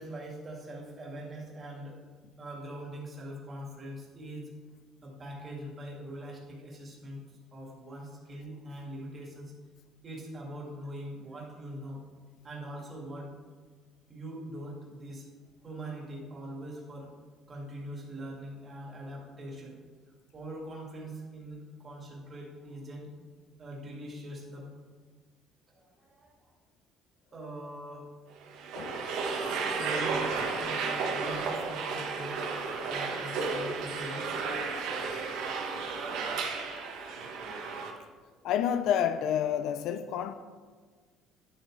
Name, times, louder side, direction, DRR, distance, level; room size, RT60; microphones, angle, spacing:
voice 1, 0.0-2.0 2.4-4.5 5.0-7.2 7.5-9.5 10.0-12.0 12.4-13.3 14.1-15.3 15.6-17.1 17.5-19.8 20.3-23.1 23.6-24.7 25.8-26.3 27.3-28.1 29.7-32.5 32.9-34.3, right 1 dB, 30° right, 2.0 m, -42 dB
sound 1, 28.4-37.9, right 4 dB, 80° right, 1.2 m, -33 dB
voice 2, 28.7-29.2 38.4-40.3, left 9 dB, 65° left, 0.4 m, -29 dB
11.0 x 7.3 x 3.2 m
cardioid pair, 145°, 0 cm